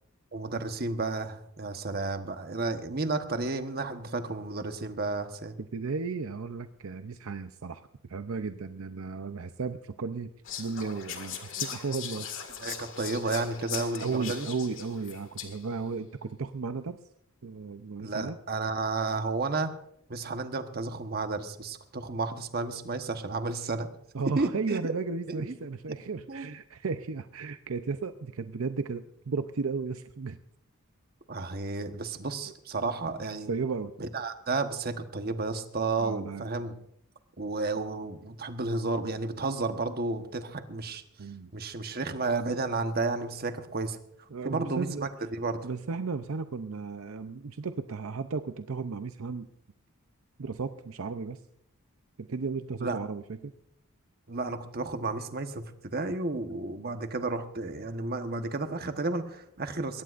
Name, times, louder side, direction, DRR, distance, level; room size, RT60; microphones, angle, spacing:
voice 1, 0.3-5.5 12.6-14.5 18.0-19.7 20.1-23.9 24.3-24.9 25.3-25.5 26.3-26.5 31.3-33.5 34.0-36.7 37.4-41.0 41.5-44.0 44.4-45.7 52.8-53.0 54.3-60.0, right 3 dB, 45° right, 7 dB, 1.2 m, -32 dB
voice 2, 5.7-7.8 8.1-10.3 10.6-12.3 14.0-17.0 17.4-18.4 24.1-30.4 33.5-33.9 36.0-36.5 41.2-41.5 44.3-45.1 45.6-49.5 50.4-51.4 52.2-53.5, right 4 dB, 70° right, 9 dB, 0.6 m, -34 dB
Whispering, 10.4-15.8, left 8 dB, 60° left, 2.0 m, -39 dB
22.0 x 18.0 x 2.5 m, 0.74 s
head